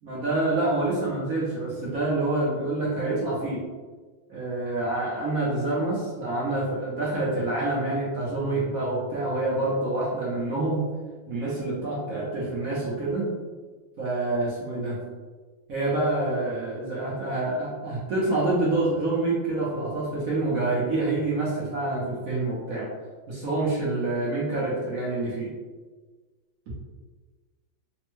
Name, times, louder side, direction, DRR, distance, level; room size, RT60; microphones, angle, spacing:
voice 1, 0.0-3.6 4.3-10.9 11.3-13.3 14.0-15.0 15.7-22.9 23.3-25.5, right 2 dB, 60° right, -6 dB, 1.0 m, -27 dB
3.4 x 2.1 x 3.0 m, 1.3 s
omnidirectional pair, 2.1 m